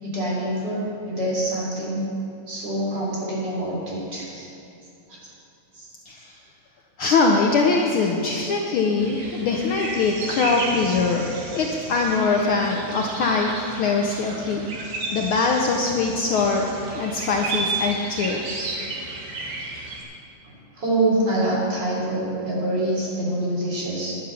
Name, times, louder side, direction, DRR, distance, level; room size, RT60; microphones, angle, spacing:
voice 1, 0.0-2.1 2.5-4.5 5.8-5.9 20.4-24.1, right 1 dB, 35° right, -5 dB, 3.8 m, -25 dB
voice 2, 6.1-6.4 7.0-11.3 11.5-16.7 16.9-18.4, left 4 dB, 90° left, 1 dB, 1.1 m, -22 dB
sound 1, 9.0-20.0, right 3 dB, 75° right, 3.2 m, -33 dB
11.0 x 9.8 x 7.0 m, 2.7 s
omnidirectional pair, 3.4 m